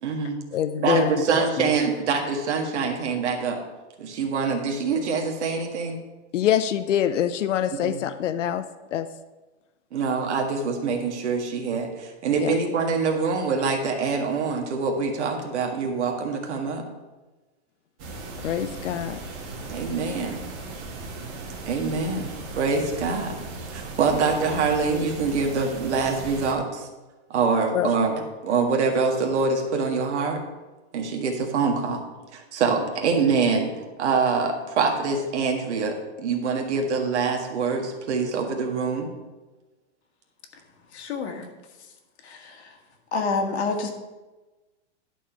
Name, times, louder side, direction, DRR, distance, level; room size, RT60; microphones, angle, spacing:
voice 1, 0.0-0.4 0.8-3.6 4.0-6.0 7.7-8.0 9.9-16.8 19.7-20.4 21.7-23.4 23.7-26.9 27.3-30.4 30.9-32.0 32.3-33.7 34.0-39.1, right 4 dB, 70° right, 2 dB, 1.8 m, -25 dB
voice 2, 0.5-1.7 6.3-8.6 8.9-9.1 12.4-12.5 18.4-19.2 27.7-27.9, left 10 dB, 90° left, 11 dB, 0.7 m, -25 dB
sound 1, 18.0-26.5, right 3 dB, 35° right, 1.8 m, -37 dB
voice 3, 40.9-41.5 42.2-42.7 43.1-43.9, left 4 dB, 65° left, 4 dB, 1.6 m, -28 dB
11.0 x 4.7 x 5.8 m, 1.2 s
supercardioid pair, 160°, 35 cm